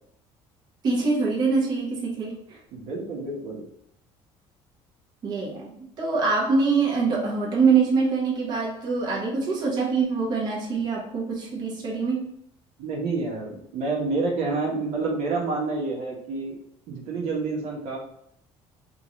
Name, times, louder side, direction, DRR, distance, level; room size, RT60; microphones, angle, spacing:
voice 1, 0.8-2.6 5.2-12.3, right 4 dB, 40° right, -4 dB, 1.0 m, -24 dB
voice 2, 2.7-3.6 12.8-16.6 16.9-18.0, right 3 dB, 80° right, -2 dB, 1.2 m, -28 dB
3.7 x 2.5 x 3.0 m, 0.74 s
cardioid pair, 150°, 11 cm